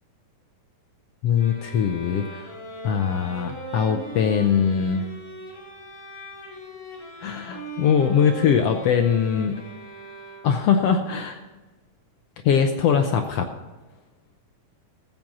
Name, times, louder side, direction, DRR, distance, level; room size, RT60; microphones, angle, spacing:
voice 1, 1.2-2.5 2.8-5.1 7.2-9.6 10.4-11.4 12.4-13.5, left 7 dB, 85° left, 5 dB, 1.4 m, -21 dB
sound 1, 1.3-10.8, right 2 dB, 10° left, 3.3 m, -39 dB
14.0 x 7.6 x 6.0 m, 1.2 s
omnidirectional pair, 3.7 m